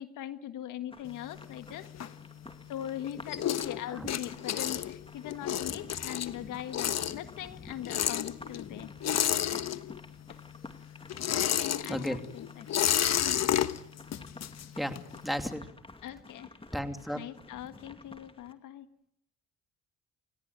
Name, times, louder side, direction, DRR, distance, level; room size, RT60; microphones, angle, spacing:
voice 1, 0.0-1.9 2.7-8.9 10.3-10.4 11.3-13.4 16.0-16.5 17.1-18.9, left 11 dB, 90° left, 9 dB, 1.7 m, -41 dB
sound 1, 0.9-18.5, left 2 dB, 20° left, 2.3 m, -51 dB
sound 2, 1.1-2.7 3.0-10.2 10.5-15.2, left 10 dB, 60° left, 1.3 m, -31 dB
voice 2, 15.2-15.7 16.7-17.2, equal, ahead, 6 dB, 2.8 m, -33 dB
29.5 x 17.5 x 9.6 m, 0.74 s
cardioid pair, 90°, 30 cm